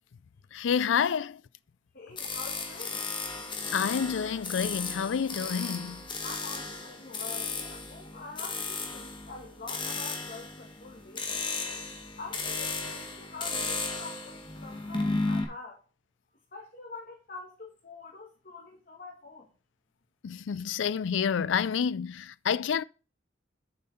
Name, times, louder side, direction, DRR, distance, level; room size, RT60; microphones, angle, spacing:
voice 1, 0.5-1.4 3.7-6.0 20.2-22.8, left 7 dB, 75° left, 0.4 m, -29 dB
voice 2, 1.9-3.0 6.2-11.5 12.2-15.8 16.5-19.5, left 4 dB, 50° left, 2.0 m, -45 dB
sound 1, 2.2-15.4, left 3 dB, 25° left, 1.7 m, -35 dB
7.9 x 5.5 x 5.6 m
head